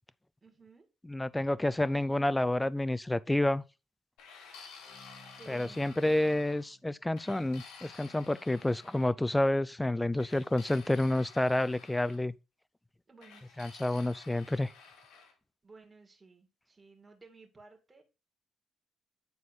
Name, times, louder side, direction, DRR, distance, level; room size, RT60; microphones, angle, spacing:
voice 1, 0.4-0.9 5.4-6.5 13.1-13.9 15.6-18.0, right 3 dB, 20° right, 2.3 m, -56 dB
voice 2, 1.1-3.6 5.5-12.3 13.6-14.7, left 1 dB, 10° left, 0.5 m, -29 dB
sound 1, 4.2-6.7 7.2-9.1 10.2-12.2 13.2-15.3, left 5 dB, 90° left, 2.1 m, -53 dB
sound 2, 4.8-8.2, right 1 dB, 60° left, 3.6 m, -59 dB
9.4 x 4.1 x 4.5 m
cardioid pair, 90°, 0 cm